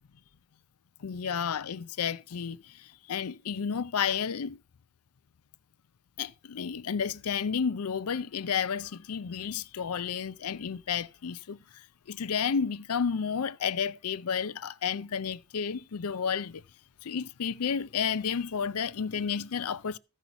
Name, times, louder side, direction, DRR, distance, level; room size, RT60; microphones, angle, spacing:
voice 1, 1.0-4.6 6.2-11.6 12.1-16.6 17.0-20.0, left 7 dB, 80° left, 0.5 m, -31 dB
14.0 x 5.6 x 5.8 m
head